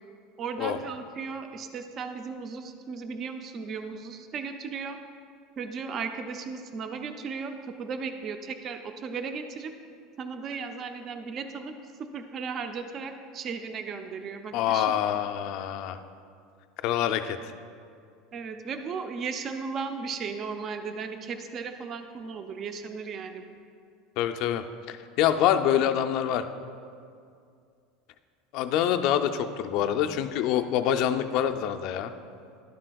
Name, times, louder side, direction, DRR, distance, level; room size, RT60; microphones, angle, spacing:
voice 1, 0.4-5.0 5.6-9.7 10.2-11.7 12.0-15.2 18.3-23.6, right 5 dB, 25° right, 7 dB, 0.4 m, -36 dB
voice 2, 14.5-16.0 16.8-17.4 24.2-26.5 28.5-32.1, left 10 dB, 45° left, 8 dB, 0.3 m, -26 dB
11.5 x 7.5 x 2.3 m, 2.3 s
cardioid pair, 175°, 0 cm